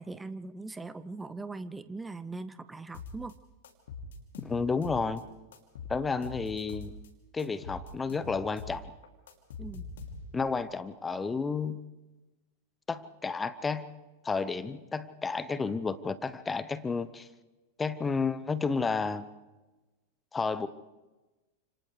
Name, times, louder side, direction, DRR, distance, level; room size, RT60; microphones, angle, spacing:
voice 1, 0.0-3.3 9.6-9.9, right 3 dB, 10° right, 14 dB, 0.6 m, -40 dB
sound 1, 2.9-3.3 3.6-5.2 5.5-7.1 7.4-10.5, left 4 dB, 60° left, 2.7 m, -43 dB
voice 2, 4.4-5.2 5.9-6.9 7.3-8.9 10.3-11.8 12.9-13.9 14.2-17.3 17.8-19.3 20.3-20.7, left 4 dB, 15° left, 16 dB, 0.9 m, -31 dB
29.5 x 27.0 x 3.4 m, 1.2 s
figure-of-eight pair, 90°, 0 cm